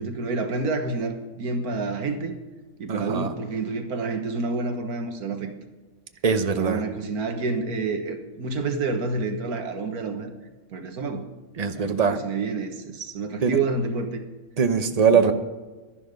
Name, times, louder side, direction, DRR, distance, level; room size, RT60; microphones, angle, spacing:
voice 1, 0.0-2.4 2.8-5.5 6.5-10.3 10.7-11.3 11.8-14.2 14.9-15.3, right 3 dB, 85° right, 6 dB, 1.8 m, -29 dB
voice 2, 2.9-3.3 6.2-6.8 11.6-12.2 13.4-13.6 14.6-15.3, right 6 dB, 35° right, 8 dB, 0.8 m, -21 dB
11.5 x 11.0 x 5.2 m, 1.2 s
omnidirectional pair, 1.5 m